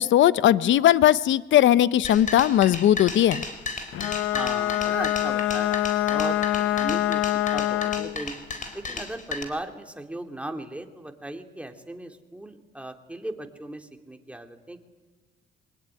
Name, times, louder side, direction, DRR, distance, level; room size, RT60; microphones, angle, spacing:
voice 1, 0.0-3.4, left 12 dB, 70° left, 17 dB, 0.7 m, -19 dB
sound 1, 2.0-9.4, left 3 dB, 40° left, 4.1 m, -34 dB
Bowed string instrument, 3.9-8.2, left 14 dB, 90° left, 1.0 m, -25 dB
voice 2, 4.3-7.2 7.5-8.4 8.7-14.8, right 1 dB, 5° right, 5 dB, 2.6 m, -37 dB
23.0 x 20.5 x 9.7 m, 1.3 s
cardioid pair, 90°, 20 cm